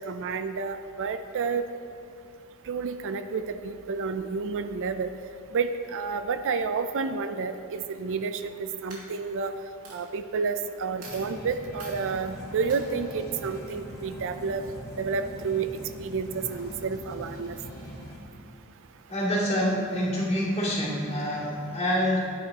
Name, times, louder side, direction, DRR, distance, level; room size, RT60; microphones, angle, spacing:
voice 1, 0.1-1.6 2.7-5.1 5.5-9.5 9.9-14.6 15.0-15.7 16.0-17.6, right 5 dB, 60° right, 9 dB, 0.4 m, -30 dB
Coin (dropping), 8.9-9.5 9.8-10.0 10.7-10.8 11.0-11.3 11.8-12.0 12.7-12.8, right 3 dB, 90° right, 2.3 m, -44 dB
sound 1, 11.0-18.2, equal, 15° left, 1.7 m, -42 dB
voice 2, 19.1-22.3, equal, 30° left, -7 dB, 2.7 m, -26 dB
15.0 x 9.5 x 2.9 m, 2.6 s
head